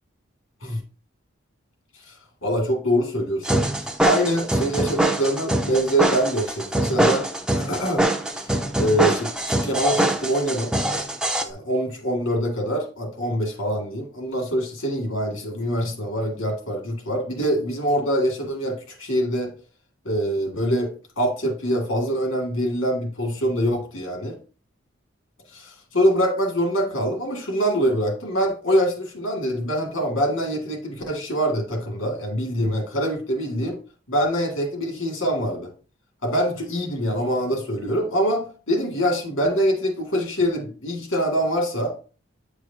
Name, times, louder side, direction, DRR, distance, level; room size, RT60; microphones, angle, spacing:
voice 1, 2.4-3.7 4.0-7.3 7.5-8.0 8.8-10.7 11.4-19.5 20.0-20.9 21.2-24.3 25.5-33.8 34.1-35.7 36.2-41.9, equal, 85° left, 2 dB, 2.1 m, -24 dB
sound 1, 3.4-11.4, right 1 dB, 5° right, 0.5 m, -23 dB
8.5 x 4.8 x 2.8 m, 0.36 s
head